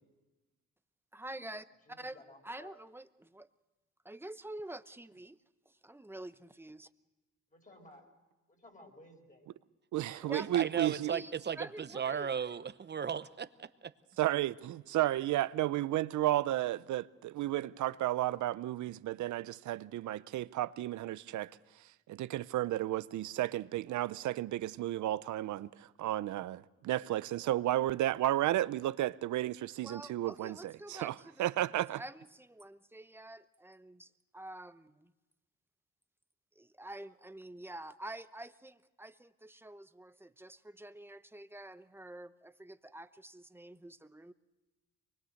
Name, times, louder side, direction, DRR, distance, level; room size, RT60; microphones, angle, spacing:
voice 1, 1.1-3.5 4.0-5.4 5.7-6.9 10.3-10.6 11.1-12.3 29.8-35.1 36.6-44.3, right 1 dB, 10° right, 0.8 m, -48 dB
voice 2, 1.9-2.8 7.5-8.1 8.5-9.5 9.9-10.9, left 2 dB, 25° left, 5.4 m, -56 dB
voice 3, 9.9-11.1 14.2-21.5 22.1-32.0, right 14 dB, 75° right, 0.6 m, -33 dB
voice 4, 10.5-13.7, right 7 dB, 35° right, 0.9 m, -36 dB
24.0 x 21.0 x 6.5 m
cardioid pair, 90°, 30 cm